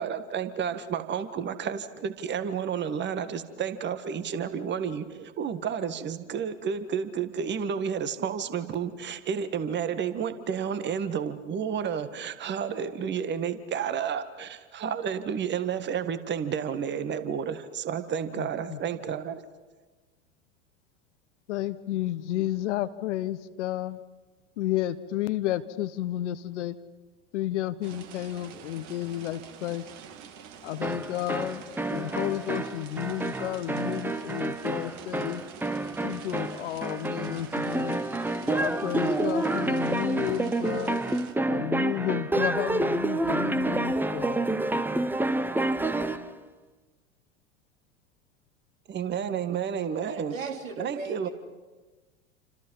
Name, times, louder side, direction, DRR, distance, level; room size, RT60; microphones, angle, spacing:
voice 1, 0.0-19.4 48.9-50.4 50.8-51.3, right 7 dB, 25° right, 11 dB, 1.7 m, -31 dB
voice 2, 18.4-18.8 21.5-24.0 24.6-26.8 27.3-29.9 30.6-31.6 31.9-35.4 36.0-38.0 38.5-41.0 41.5-44.6, left 13 dB, 60° left, 13 dB, 1.3 m, -32 dB
sound 1, 27.8-41.3, right 8 dB, 45° right, 2.6 m, -47 dB
sound 2, 30.8-46.3, right 2 dB, 5° right, 1.0 m, -29 dB
voice 3, 50.1-51.3, right 4 dB, 70° right, 3 dB, 3.8 m, -37 dB
29.0 x 26.5 x 5.6 m, 1.3 s
figure-of-eight pair, 85°, 41 cm